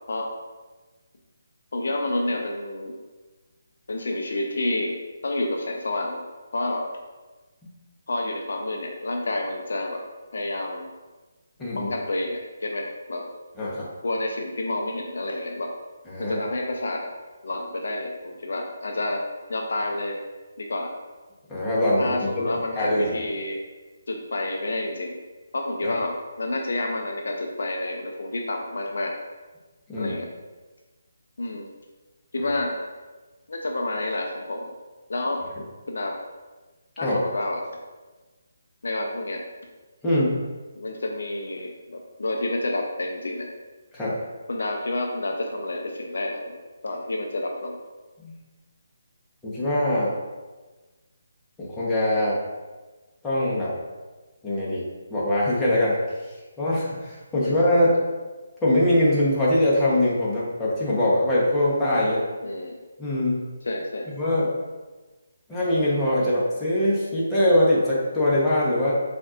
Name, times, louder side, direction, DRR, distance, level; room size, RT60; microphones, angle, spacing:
voice 1, 1.7-2.9 3.9-5.0 5.2-6.2 6.5-6.9 8.1-10.0 10.3-10.9 11.7-13.2 14.0-15.7 16.2-17.1 17.4-19.2 19.5-20.2 20.6-20.9 22.0-23.6 24.1-25.2 25.5-29.1 30.0-30.3 31.4-31.7 32.3-32.7 33.5-34.7 35.1-35.4 35.9-36.1 37.0-37.6 38.8-39.4 40.7-43.5 44.5-46.4 46.8-47.8 57.4-57.5 62.4-62.8 63.6-64.1, left 2 dB, 65° left, 1 dB, 0.5 m, -29 dB
voice 2, 11.6-11.9 13.6-13.8 16.1-16.4 21.5-22.4 22.8-23.1 25.8-25.9 29.9-30.1 32.4-32.5 37.0-37.1 40.0-40.3 43.9-44.1 48.2-48.4 49.4-50.1 51.6-52.4 53.2-53.7 54.4-54.8 55.1-56.0 56.6-57.9 58.6-62.2 63.0-63.4 64.2-64.5 65.5-68.9, left 1 dB, 10° left, -9 dB, 1.0 m, -22 dB
5.7 x 2.6 x 2.5 m, 1.3 s
figure-of-eight pair, 150°, 0 cm